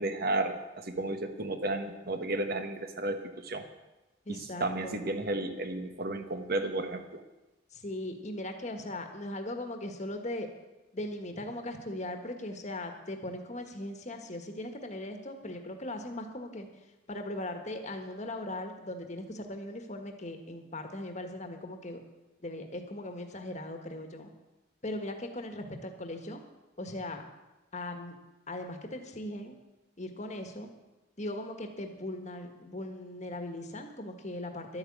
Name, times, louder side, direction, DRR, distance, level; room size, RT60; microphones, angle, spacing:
voice 1, 0.0-3.6 4.3-7.2, right 2 dB, 50° right, 7 dB, 1.3 m, -33 dB
voice 2, 4.2-5.0 7.7-10.5 10.9-16.7 17.1-22.0 22.4-24.3 24.8-26.4 26.8-27.2 27.7-28.1 28.5-29.5 30.0-30.7 31.2-34.8, left 1 dB, 35° left, 5 dB, 1.5 m, -39 dB
12.0 x 8.8 x 8.5 m, 1.1 s
head